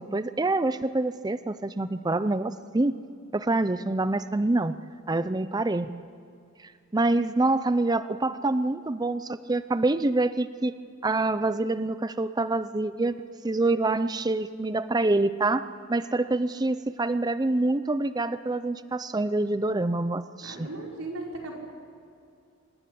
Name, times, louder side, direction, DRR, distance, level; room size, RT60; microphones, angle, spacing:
voice 1, 0.0-3.0 3.3-4.8 5.1-5.9 6.9-10.7 11.0-13.2 13.4-20.7, right 2 dB, 20° right, 13 dB, 0.5 m, -26 dB
voice 2, 20.4-21.5, right 2 dB, 75° right, -1 dB, 5.5 m, -37 dB
25.5 x 21.5 x 8.5 m, 2.4 s
head